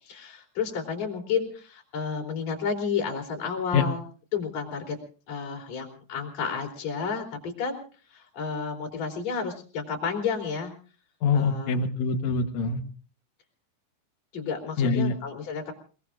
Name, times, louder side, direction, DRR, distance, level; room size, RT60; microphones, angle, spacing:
voice 1, 0.0-4.0 4.3-5.0 5.3-7.8 8.1-10.7 11.3-11.8 14.3-15.7, left 6 dB, 40° left, 2 dB, 4.2 m, -31 dB
voice 2, 11.2-12.8 14.8-15.1, left 4 dB, 70° left, 8 dB, 1.7 m, -24 dB
29.0 x 19.5 x 2.5 m, 0.39 s
omnidirectional pair, 5.0 m